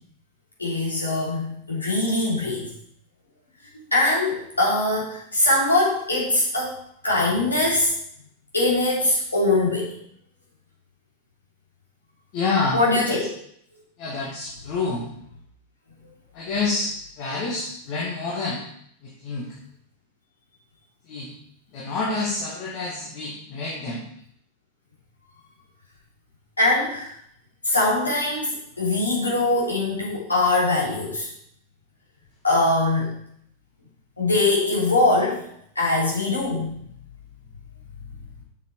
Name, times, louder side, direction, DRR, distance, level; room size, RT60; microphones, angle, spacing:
voice 1, 0.6-2.7 3.9-6.7 7.0-7.9 8.5-10.0 12.7-13.3 26.6-27.1 27.6-31.3 32.4-33.2 34.2-35.4 35.7-36.7, left 2 dB, 80° left, -5 dB, 3.1 m, -22 dB
voice 2, 12.3-13.2 14.0-15.1 16.3-18.6 19.0-19.6 21.1-21.3 21.7-24.0, left 3 dB, 45° left, -3 dB, 1.7 m, -28 dB
6.8 x 6.8 x 4.6 m, 0.69 s
figure-of-eight pair, 90°, 0 cm